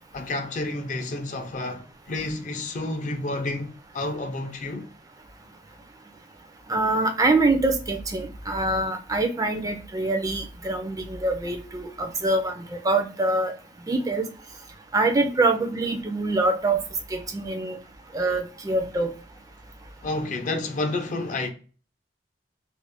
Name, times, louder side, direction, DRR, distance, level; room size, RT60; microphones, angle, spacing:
voice 1, 0.1-4.9 20.0-21.5, left 2 dB, 45° left, 0.5 m, -30 dB
voice 2, 6.7-13.5 13.9-14.3 14.9-16.8 17.1-17.8 18.1-19.1, right 2 dB, 20° right, 0.3 m, -24 dB
2.5 x 2.1 x 3.3 m
head